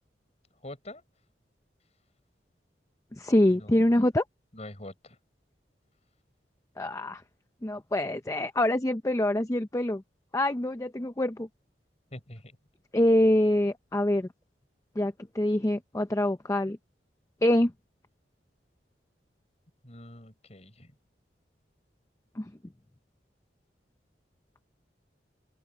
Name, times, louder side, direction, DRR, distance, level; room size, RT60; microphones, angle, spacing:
voice 1, 0.6-1.0 3.6-4.0 4.5-5.2 12.1-12.6 19.8-20.9, left 1 dB, 35° left, 6.0 m, -45 dB
voice 2, 3.2-4.2 6.8-7.2 7.6-10.0 10.3-11.5 12.9-14.3 15.0-16.8 17.4-17.7 22.4-22.5, left 1 dB, 15° left, 0.6 m, -25 dB
head